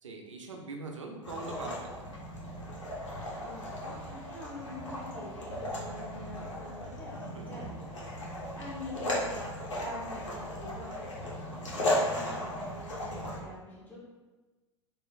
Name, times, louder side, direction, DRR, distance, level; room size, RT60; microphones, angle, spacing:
voice 1, 0.0-2.1 7.3-7.6, right 3 dB, 80° right, 2 dB, 0.5 m, -42 dB
sound 1, 1.2-13.4, left 1 dB, 75° left, 0.9 m, -36 dB
voice 2, 3.4-14.0, left 1 dB, 10° left, -8 dB, 1.4 m, -45 dB
3.3 x 2.1 x 3.8 m, 1.2 s
figure-of-eight pair, 90°, 16 cm